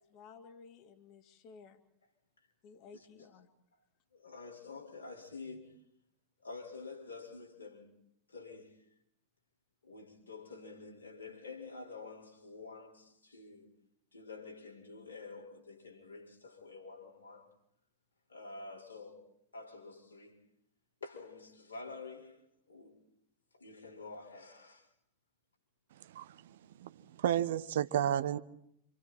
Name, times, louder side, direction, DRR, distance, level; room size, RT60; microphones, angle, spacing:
voice 1, 0.0-1.8 2.6-3.5, left 5 dB, 40° left, 2.4 m, -55 dB
voice 2, 2.9-3.3 4.1-5.8 6.4-7.9 8.3-8.8 9.8-13.7 14.1-17.5 18.3-20.4 21.0-23.0 23.5-24.9, left 4 dB, 80° left, 5.0 m, -49 dB
voice 3, 26.0-28.4, right 10 dB, 60° right, 1.0 m, -33 dB
28.0 x 27.5 x 4.4 m
figure-of-eight pair, 90°, 0 cm